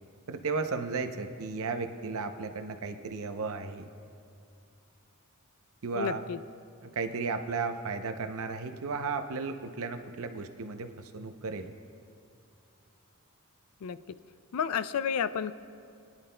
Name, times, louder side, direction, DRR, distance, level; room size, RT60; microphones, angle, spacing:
voice 1, 0.3-3.9 5.8-6.2 6.8-11.7, right 4 dB, 65° right, 8 dB, 0.6 m, -34 dB
voice 2, 6.0-6.4 13.8-14.2 14.5-15.5, left 7 dB, 70° left, 14 dB, 0.4 m, -31 dB
22.5 x 10.5 x 2.2 m, 2.4 s
head